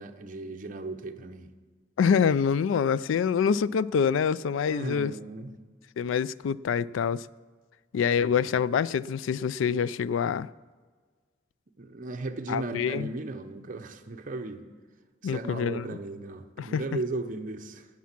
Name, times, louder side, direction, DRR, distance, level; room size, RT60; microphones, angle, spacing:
voice 1, 0.0-1.5 4.7-5.6 8.2-8.6 11.8-14.6 15.2-17.9, right 2 dB, 40° right, 0.7 m, -36 dB
voice 2, 2.0-5.1 6.0-7.3 7.9-10.5 12.5-13.1 15.2-16.0 16.6-16.8, left 7 dB, 70° left, 0.3 m, -26 dB
17.5 x 7.4 x 5.9 m
head